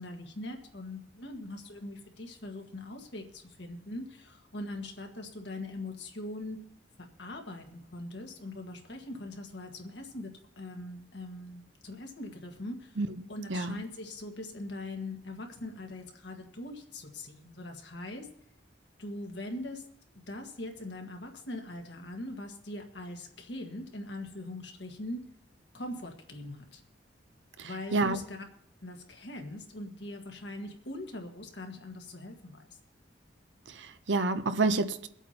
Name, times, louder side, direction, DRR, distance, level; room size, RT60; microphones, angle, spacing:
voice 1, 0.0-6.6 7.2-10.3 10.6-13.0 13.3-18.3 19.0-19.8 20.3-25.2 25.7-26.8 27.6-28.4 28.8-32.7, left 1 dB, 70° left, 1.6 m, -41 dB
voice 2, 27.6-28.2 33.7-35.1, right 3 dB, 80° right, 0.7 m, -29 dB
23.5 x 8.2 x 2.9 m
head